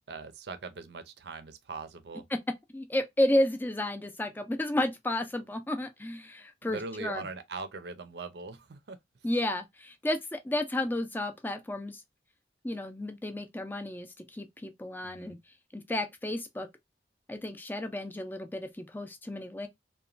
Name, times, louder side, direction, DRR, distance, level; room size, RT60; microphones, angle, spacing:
voice 1, 0.0-2.2 6.6-9.0 15.0-15.4, right 3 dB, 75° right, 0.5 m, -41 dB
voice 2, 2.7-7.3 9.2-12.0 12.6-15.4 15.7-16.7 17.3-19.7, left 1 dB, 10° left, 0.3 m, -32 dB
2.9 x 2.2 x 2.4 m
head